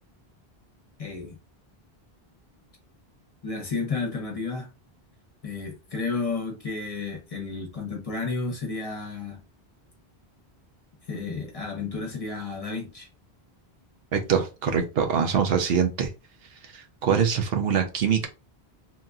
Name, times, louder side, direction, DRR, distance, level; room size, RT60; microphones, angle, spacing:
voice 1, 1.0-1.4 3.4-4.7 5.4-9.4 11.1-13.1, left 4 dB, 35° left, 0.8 m, -32 dB
voice 2, 14.1-16.1 16.7-18.3, right 7 dB, 70° right, 0.8 m, -24 dB
2.9 x 2.6 x 2.3 m
omnidirectional pair, 1.1 m